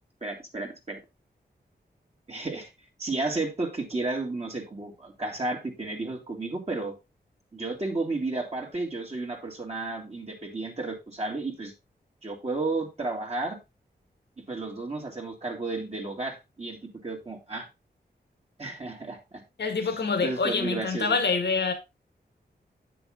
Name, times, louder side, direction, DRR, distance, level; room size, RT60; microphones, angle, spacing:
voice 1, 0.2-1.0 2.3-2.7 3.0-6.9 7.5-11.7 12.2-13.6 14.5-17.7 18.6-19.4 19.8-21.2, right 3 dB, 35° right, 2.8 m, -32 dB
voice 2, 19.6-21.7, left 4 dB, 80° left, 1.9 m, -26 dB
9.4 x 6.9 x 3.8 m
wide cardioid pair, 90°, 18 cm